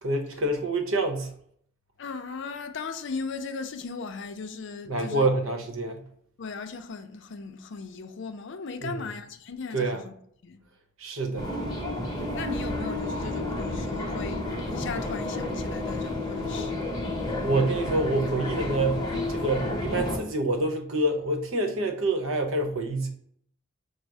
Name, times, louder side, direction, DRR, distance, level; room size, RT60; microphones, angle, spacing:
voice 1, 0.0-1.3 4.9-6.0 8.8-9.1 9.7-10.0 11.0-11.5 17.4-23.1, right 2 dB, 85° right, 0.8 m, -27 dB
voice 2, 2.0-5.3 6.4-10.1 10.4-10.6 12.3-14.4 14.7-16.8, left 4 dB, 60° left, 0.5 m, -37 dB
sound 1, 11.4-20.2, left 1 dB, 20° left, 0.8 m, -31 dB
5.2 x 2.0 x 4.5 m
head